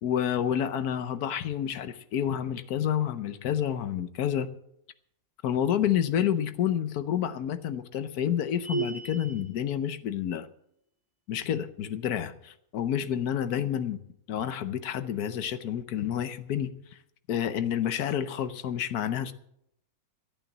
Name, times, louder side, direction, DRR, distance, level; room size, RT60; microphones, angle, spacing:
voice 1, 0.0-4.5 5.4-10.5 11.3-14.0 14.3-16.7 17.3-19.3, left 9 dB, 85° left, 11 dB, 1.3 m, -29 dB
sound 1, 8.6-9.5, right 5 dB, 75° right, 3.2 m, -33 dB
13.5 x 9.0 x 7.2 m, 0.74 s
omnidirectional pair, 1.6 m